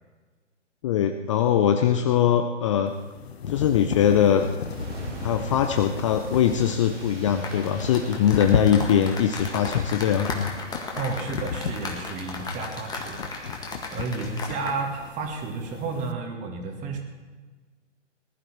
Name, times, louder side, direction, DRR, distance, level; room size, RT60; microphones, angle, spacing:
voice 1, 0.8-2.9 3.5-4.4 5.2-10.5, left 9 dB, 25° left, 6 dB, 0.6 m, -22 dB
sound 1, 2.9-16.1, left 6 dB, 55° left, 1.0 m, -34 dB
sound 2, 4.6-9.5, equal, 75° right, 5.1 m, -40 dB
sound 3, 7.4-14.8 15.0-15.3, left 3 dB, 10° left, 1.7 m, -36 dB
voice 2, 11.0-17.0, right 4 dB, 20° right, 3 dB, 2.2 m, -32 dB
19.5 x 11.5 x 4.5 m, 1.4 s
figure-of-eight pair, 120°, 36 cm